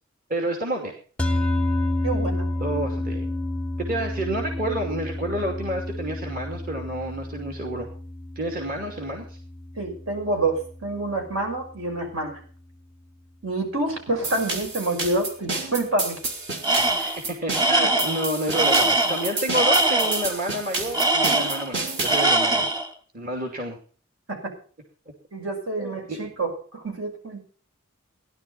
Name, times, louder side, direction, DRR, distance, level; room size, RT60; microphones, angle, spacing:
voice 1, 0.3-0.9 2.6-3.3 3.8-7.9 8.4-9.4 17.0-22.7 23.1-23.8 25.8-26.2, right 1 dB, 45° right, 2 dB, 2.7 m, -29 dB
sound 1, 1.2-11.6, left 1 dB, 5° left, 0.8 m, -30 dB
voice 2, 2.0-2.5 9.8-12.4 13.4-16.2 17.8-17.9 24.3-24.4 25.3-27.4, right 2 dB, 75° right, 2 dB, 6.4 m, -27 dB
sound 2, 14.2-22.2, right 3 dB, 60° right, 3.9 m, -30 dB
Tools, 16.6-17.2 17.5-20.3 20.9-21.8 22.0-22.9, right 2 dB, 20° right, 1.7 m, -22 dB
17.5 x 11.5 x 4.2 m, 0.42 s
head